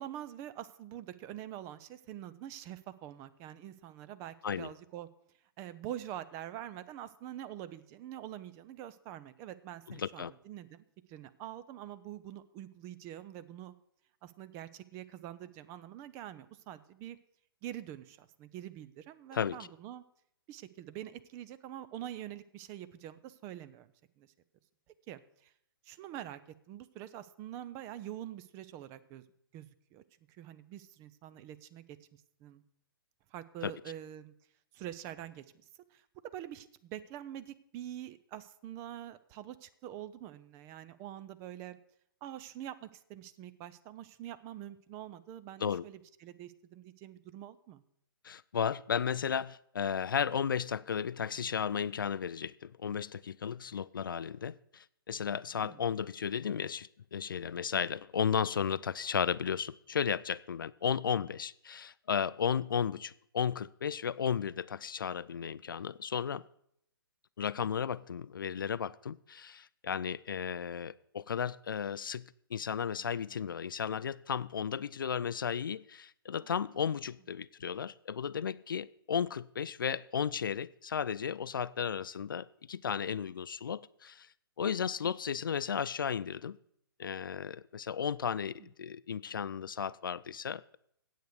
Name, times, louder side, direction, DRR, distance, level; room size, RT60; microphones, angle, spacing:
voice 1, 0.0-5.1 5.6-13.7 14.2-17.2 17.6-20.0 20.5-23.9 24.2-24.3 25.1-25.5 25.8-26.4 26.7-29.2 29.5-30.0 30.4-32.0 32.4-32.6 33.3-34.3 34.7-35.4 35.9-36.0 36.3-41.8 42.2-47.8 55.6-55.8 85.0-85.1 88.6-88.7, right 12 dB, 25° right, 0.5 m, -45 dB
voice 2, 9.9-10.3 19.3-19.6 33.6-33.7 45.6-45.9 48.2-66.4 67.4-84.3 84.6-86.6 87.0-90.8, left 7 dB, 65° left, 0.4 m, -34 dB
9.3 x 8.2 x 6.5 m
figure-of-eight pair, 120°, 12 cm